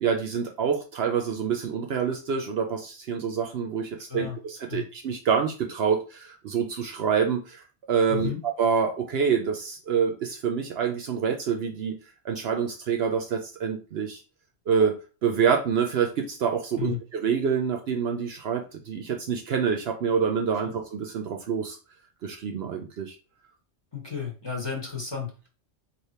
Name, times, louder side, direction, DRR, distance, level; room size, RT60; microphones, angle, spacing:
voice 1, 0.0-12.0 12.2-14.2 14.7-15.0 15.2-21.8 22.2-23.2, right 6 dB, 65° right, 3 dB, 0.8 m, -27 dB
voice 2, 8.1-8.4 16.8-17.0 23.9-25.3, left 7 dB, 20° left, -1 dB, 1.1 m, -32 dB
3.3 x 2.9 x 4.2 m, 0.34 s
omnidirectional pair, 1.2 m